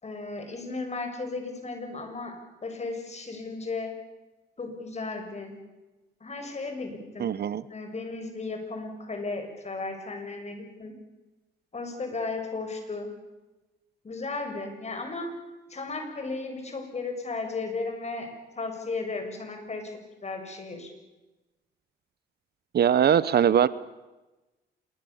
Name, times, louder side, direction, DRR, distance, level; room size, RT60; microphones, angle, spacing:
voice 1, 0.0-2.3 2.6-3.9 4.6-5.5 6.2-7.4 7.7-11.0 11.7-13.1 14.0-15.3 15.7-18.3 18.5-19.9 20.2-20.9, left 3 dB, 35° left, 5 dB, 6.7 m, -35 dB
voice 2, 7.2-7.6 22.7-23.7, right 9 dB, 55° right, 18 dB, 0.9 m, -21 dB
27.0 x 22.0 x 7.2 m, 1.1 s
cardioid pair, 90°, 20 cm